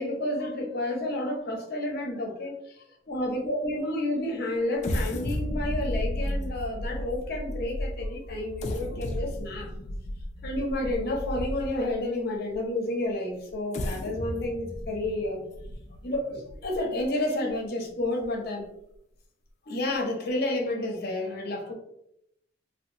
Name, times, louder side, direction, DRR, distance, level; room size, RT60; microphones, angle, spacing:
voice 1, 0.0-9.7 10.4-15.4 16.0-18.7 19.7-21.7, left 1 dB, 55° left, 0 dB, 0.7 m, -30 dB
sound 1, 4.8-11.9 12.5-12.6 13.5-17.0 17.5-17.6 18.0-18.2, left 1 dB, 35° left, 0.3 m, -33 dB
2.7 x 2.3 x 2.7 m, 0.77 s
head